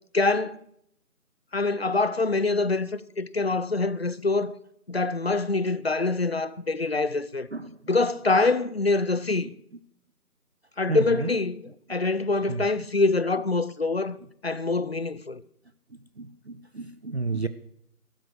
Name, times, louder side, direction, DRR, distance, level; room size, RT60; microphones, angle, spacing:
voice 1, 0.1-0.6 1.5-4.6 4.9-7.5 7.9-9.5 10.8-11.6 11.9-14.2 14.4-15.4, left 3 dB, 40° left, 0.6 m, -25 dB
voice 2, 7.5-7.9 10.9-11.3 12.2-12.7 15.9-17.5, right 4 dB, 45° right, 0.7 m, -32 dB
16.0 x 12.5 x 4.7 m
figure-of-eight pair, 160°, 46 cm